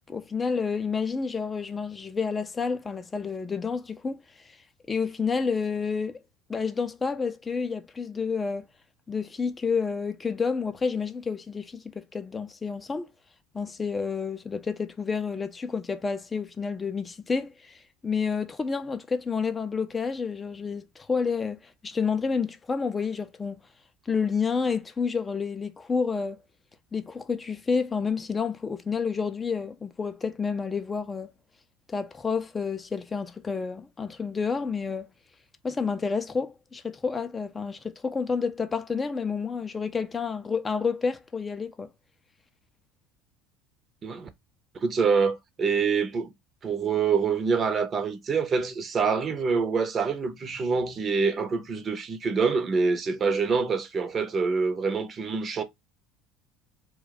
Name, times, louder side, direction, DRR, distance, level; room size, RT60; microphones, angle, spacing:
voice 1, 0.1-4.6 4.9-6.2 6.5-8.7 9.1-13.1 13.5-23.6 24.1-26.4 26.9-31.3 31.9-35.1 35.6-41.9, left 5 dB, 25° left, 0.4 m, -29 dB
voice 2, 44.8-46.3 46.6-55.6, right 5 dB, 35° right, 0.6 m, -26 dB
2.3 x 2.2 x 3.9 m
hypercardioid pair, 70°, 0 cm